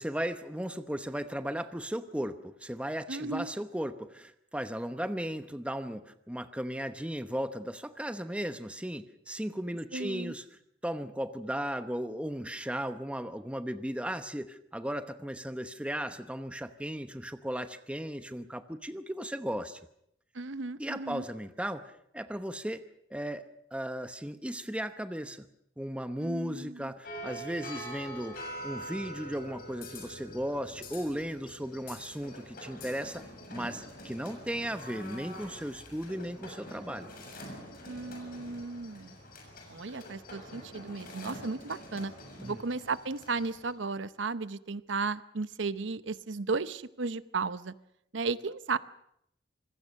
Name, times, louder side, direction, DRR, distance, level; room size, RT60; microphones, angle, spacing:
voice 1, 0.0-10.4 10.8-19.8 20.8-22.8 23.1-25.5 25.8-33.2 33.5-37.1 42.4-42.6, equal, 5° right, 9 dB, 0.9 m, -36 dB
voice 2, 3.1-3.5 9.9-10.3 20.3-21.2 26.2-26.9 37.8-39.2 39.7-42.1 42.4-47.7 48.1-48.8, right 4 dB, 80° right, 14 dB, 0.8 m, -35 dB
sound 1, 27.0-43.7, equal, 50° left, 6.9 m, -45 dB
26.5 x 21.0 x 6.5 m, 0.74 s
head